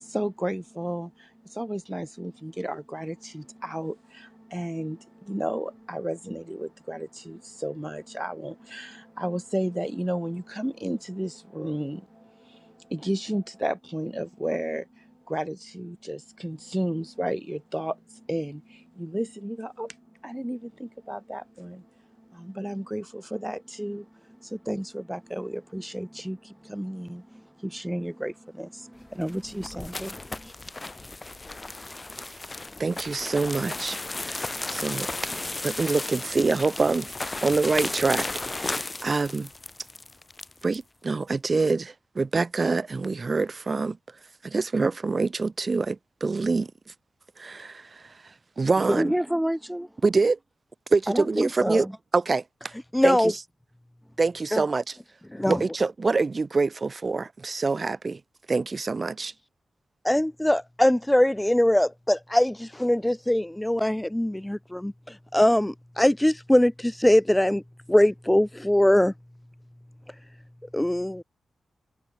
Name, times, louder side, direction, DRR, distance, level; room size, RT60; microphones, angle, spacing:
voice 1, 0.0-20.0 20.2-21.9 22.2-30.5 48.8-49.9 51.1-52.0, equal, 5° right, 1.4 m, -32 dB
sound 1, 29.1-40.8, left 2 dB, 30° left, 3.4 m, -34 dB
voice 2, 32.8-34.0 34.2-35.1 35.6-37.1 37.4-39.5 40.6-44.0 44.4-46.7 47.4-48.1 48.6-49.1 50.0-50.4 50.9-51.9 52.1-52.4 53.0-53.3 54.2-55.0 55.4-58.2 58.5-59.3, right 4 dB, 45° right, 1.4 m, -25 dB
voice 3, 52.9-53.3 54.5-54.6 55.3-55.6 60.0-67.6 67.9-69.1 70.7-71.2, left 1 dB, 10° left, 0.4 m, -22 dB
cardioid pair, 55°, 0 cm